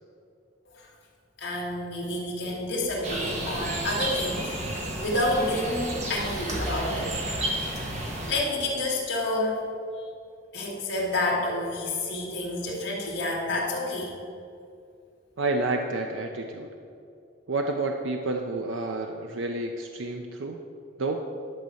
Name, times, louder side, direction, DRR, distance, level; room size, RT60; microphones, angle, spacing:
voice 1, 1.4-7.1 8.3-9.6 9.9-10.1 10.5-14.1, left 1 dB, 60° left, -3 dB, 2.2 m, -29 dB
sound 1, 3.0-8.3, right 1 dB, 35° right, 1.4 m, -32 dB
voice 2, 15.4-16.7 17.5-20.6 21.0-21.2, right 2 dB, 75° right, 3 dB, 0.6 m, -29 dB
11.0 x 4.2 x 7.8 m, 2.4 s
head